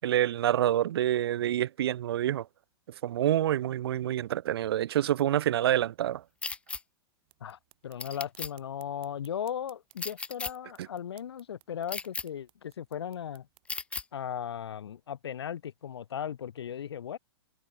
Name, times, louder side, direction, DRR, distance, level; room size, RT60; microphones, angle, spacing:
voice 1, 0.0-2.5 3.0-6.2, right 12 dB, 70° right, 0.4 m, -27 dB
sound 1, 6.4-6.8 8.0-8.5 10.0-10.5 11.9-12.2 13.7-14.0, left 4 dB, 10° left, 0.5 m, -35 dB
sound 2, 7.2-13.7, right 22 dB, 40° right, 7.1 m, -63 dB
voice 2, 7.4-13.5 14.1-17.2, left 9 dB, 80° left, 1.1 m, -37 dB
hypercardioid pair, 115°, 13 cm